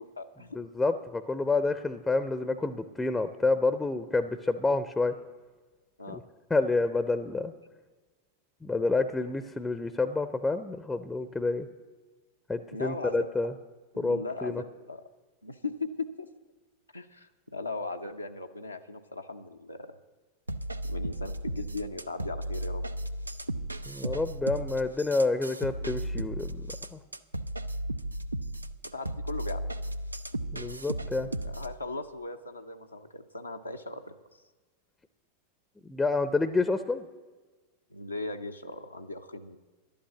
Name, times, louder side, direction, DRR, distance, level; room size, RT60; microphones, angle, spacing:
voice 1, 0.0-0.6 6.0-6.2 9.2-9.3 12.7-13.3 13.9-15.0 15.4-16.3 16.9-20.0 20.8-22.9 28.8-29.6 31.2-34.1 37.9-39.6, left 3 dB, 85° left, 4 dB, 0.6 m, -38 dB
voice 2, 0.5-5.1 6.1-6.2 6.5-7.5 8.6-11.7 12.5-13.5 14.0-14.6 23.9-27.0 30.5-31.3 35.9-37.0, left 3 dB, 10° left, 12 dB, 0.5 m, -28 dB
sound 1, 20.5-31.8, right 1 dB, 85° right, 0.4 m, -35 dB
11.5 x 8.7 x 8.1 m, 1.3 s
figure-of-eight pair, 90°, 0 cm